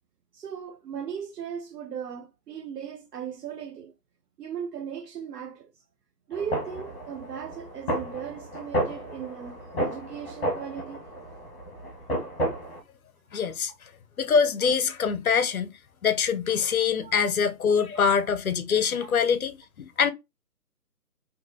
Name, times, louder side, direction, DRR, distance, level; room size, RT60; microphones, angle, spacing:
voice 1, 0.3-3.9 4.4-5.7 6.3-11.4 16.8-17.3 17.9-18.1 19.0-19.1, right 8 dB, 75° right, 0.6 m, -38 dB
sound 1, 6.3-12.8, right 1 dB, 35° left, 1.0 m, -32 dB
voice 2, 13.3-13.7 14.2-15.7 16.0-20.1, left 6 dB, 60° left, 0.6 m, -24 dB
3.6 x 2.7 x 2.5 m
figure-of-eight pair, 160°, 48 cm